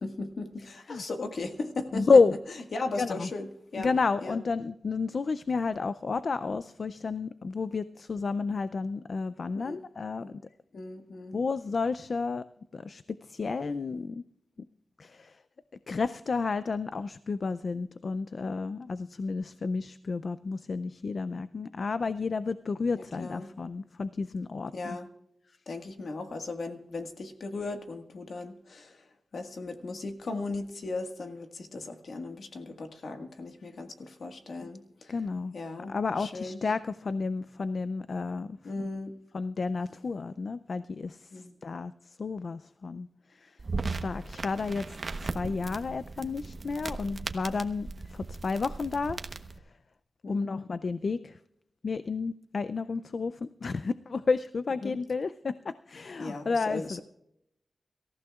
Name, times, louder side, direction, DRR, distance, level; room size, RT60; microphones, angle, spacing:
voice 1, 0.0-2.1 2.7-3.5 3.7-3.9 4.2-4.4 9.5-9.8 10.2-10.3 10.7-11.4 22.9-23.5 24.7-25.1 25.7-29.0 29.3-35.1 35.5-36.6 38.6-39.1 41.3-41.5 50.2-50.5 54.8-55.0 56.2-57.0, left 3 dB, 80° left, 5 dB, 1.6 m, -37 dB
voice 2, 1.9-2.3 3.0-3.3 3.8-10.2 11.3-12.4 12.7-14.2 15.0-15.4 15.9-25.0 35.1-35.5 35.9-38.9 39.3-41.2 41.6-41.9 42.2-43.1 43.4-43.5 43.9-44.8 45.3-49.2 50.3-51.4 51.8-57.0, left 4 dB, 60° left, 14 dB, 0.4 m, -30 dB
sound 1, 43.6-49.6, right 3 dB, 50° right, 0.9 m, -37 dB
25.0 x 14.5 x 2.4 m, 0.77 s
wide cardioid pair, 90°, 0 cm